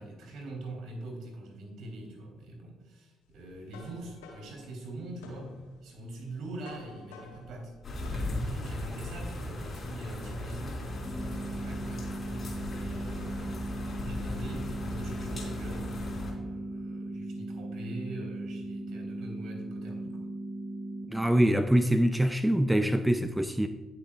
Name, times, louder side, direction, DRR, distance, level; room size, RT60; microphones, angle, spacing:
voice 1, 0.0-5.5 5.8-7.7 8.1-20.3, right 2 dB, 65° right, 3.4 m, -43 dB
sound 1, 3.3-8.7, left 2 dB, 80° left, 1.6 m, -49 dB
sound 2, 7.8-16.3, left 1 dB, 45° left, 3.5 m, -37 dB
sound 3, 11.0-21.1, right 1 dB, 20° left, 2.6 m, -38 dB
voice 2, 21.1-23.7, right 1 dB, 5° right, 0.6 m, -24 dB
19.0 x 6.4 x 2.4 m
hypercardioid pair, 40°, 0 cm